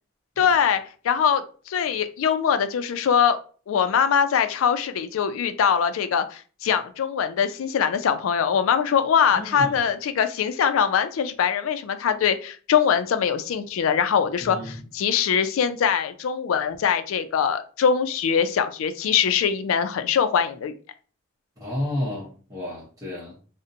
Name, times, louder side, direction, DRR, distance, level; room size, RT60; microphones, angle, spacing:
voice 1, 0.4-0.8 1.0-3.4 3.7-20.7, left 7 dB, 80° left, 0.3 m, -22 dB
voice 2, 9.3-9.8 14.4-14.8 21.6-23.4, left 1 dB, 15° right, 0.7 m, -31 dB
2.5 x 2.1 x 2.6 m
head